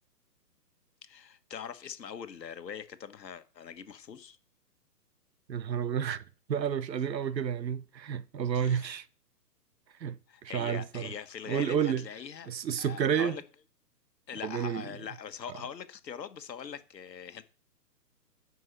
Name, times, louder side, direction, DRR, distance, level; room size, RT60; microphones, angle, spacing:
voice 1, 1.0-4.4 8.5-9.0 10.3-12.5 12.8-13.4 14.3-17.4, left 7 dB, 80° left, 1.6 m, -42 dB
voice 2, 5.5-6.2 6.5-9.0 10.0-11.1 11.5-12.0 12.5-13.4 14.4-14.8, right 8 dB, 85° right, 1.0 m, -30 dB
9.7 x 5.5 x 6.7 m
hypercardioid pair, 160°, 49 cm